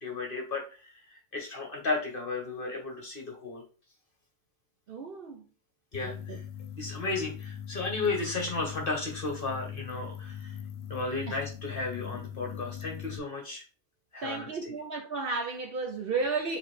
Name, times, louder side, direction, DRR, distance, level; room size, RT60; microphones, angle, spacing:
voice 1, 0.0-3.6 5.9-6.4 6.7-10.6 10.9-13.6 14.1-14.7, left 3 dB, 45° left, 1.1 m, -34 dB
voice 2, 4.9-5.4 6.0-6.4 11.3-11.4 14.2-16.6, right 4 dB, 55° right, 0.7 m, -33 dB
sound 1, 5.9-13.2, left 9 dB, 65° left, 0.7 m, -41 dB
4.8 x 3.2 x 3.1 m
omnidirectional pair, 1.4 m